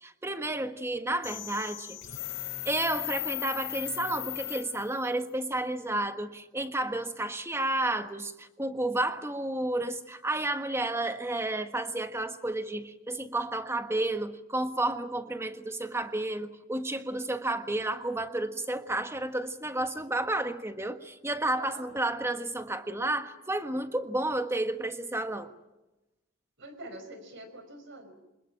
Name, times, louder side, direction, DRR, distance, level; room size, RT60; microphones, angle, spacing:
voice 1, 0.0-2.0 2.6-25.5, right 1 dB, 15° right, 8 dB, 1.4 m, -31 dB
sound 1, 1.2-5.1, left 15 dB, 70° left, 4.2 m, -37 dB
voice 2, 21.6-22.1 26.6-28.1, right 1 dB, 60° right, 9 dB, 5.3 m, -45 dB
26.0 x 21.5 x 8.9 m, 1.0 s
head